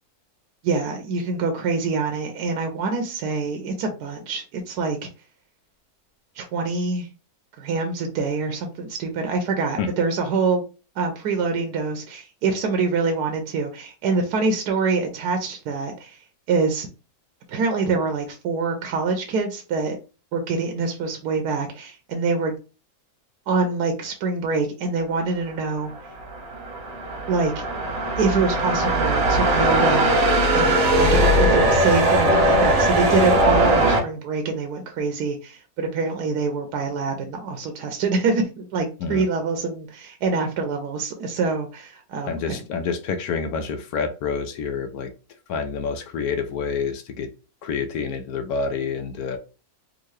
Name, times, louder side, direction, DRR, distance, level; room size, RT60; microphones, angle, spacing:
voice 1, 0.6-5.1 6.4-7.1 7.6-10.6 11.0-16.2 16.5-16.9 17.5-20.0 20.3-22.6 23.5-25.9 27.3-27.6 28.2-30.0 30.5-42.6, right 4 dB, 85° right, 1.2 m, -25 dB
sound 1, 26.1-34.0, right 1 dB, 60° right, 1.2 m, -19 dB
voice 2, 42.3-45.1 45.5-47.3 47.6-49.4, left 5 dB, 75° left, 1.0 m, -28 dB
3.6 x 2.5 x 3.1 m
omnidirectional pair, 1.6 m